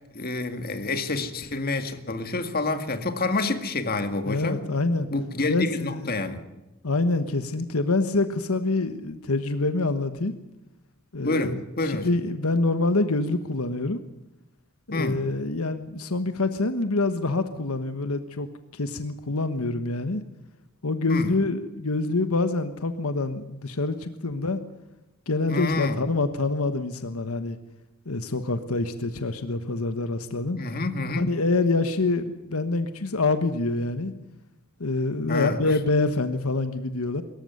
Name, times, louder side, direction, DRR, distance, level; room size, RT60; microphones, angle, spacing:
voice 1, 0.1-4.6 5.1-6.4 11.2-12.1 14.9-15.2 21.1-21.3 25.5-26.0 30.6-31.3 35.3-35.6, left 2 dB, 45° left, 8 dB, 2.0 m, -28 dB
voice 2, 4.3-5.1 5.5-6.2 6.8-10.3 11.1-14.0 14.9-18.5 18.7-20.2 20.8-24.6 25.3-27.6 28.0-30.6 31.2-34.1 34.8-37.2, left 3 dB, 80° left, 9 dB, 1.3 m, -26 dB
23.5 x 14.5 x 9.4 m, 0.99 s
head